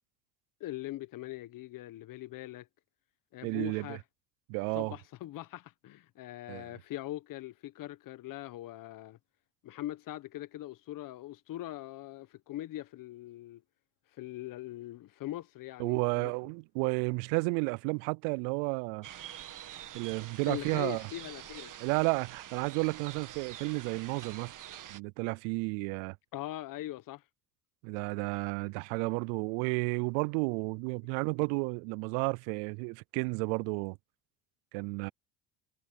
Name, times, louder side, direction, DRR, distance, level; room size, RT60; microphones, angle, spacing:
voice 1, 0.6-2.7 3.3-4.0 4.7-9.2 9.6-13.6 14.2-16.3 20.5-21.7 26.3-27.2, left 15 dB, 55° left, 1.1 m, -41 dB
voice 2, 3.4-4.0 4.5-4.9 6.5-6.7 15.8-19.1 19.9-21.0 21.8-24.5 24.9-26.2 27.8-34.0 34.7-35.1, right 33 dB, 75° right, 0.5 m, -32 dB
sound 1, 19.0-25.0, right 11 dB, 50° right, 1.9 m, -46 dB
supercardioid pair, 80°, 40 cm